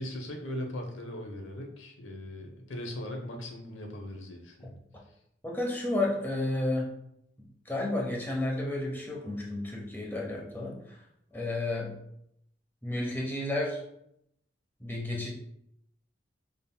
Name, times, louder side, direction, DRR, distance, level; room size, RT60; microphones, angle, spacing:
voice 1, 0.0-4.7, left 1 dB, 85° left, 2 dB, 0.9 m, -39 dB
voice 2, 5.4-6.9 7.6-11.0 11.3-11.9 12.8-13.8 14.8-15.3, left 2 dB, 10° left, -2 dB, 0.8 m, -31 dB
5.3 x 3.7 x 2.2 m, 0.76 s
head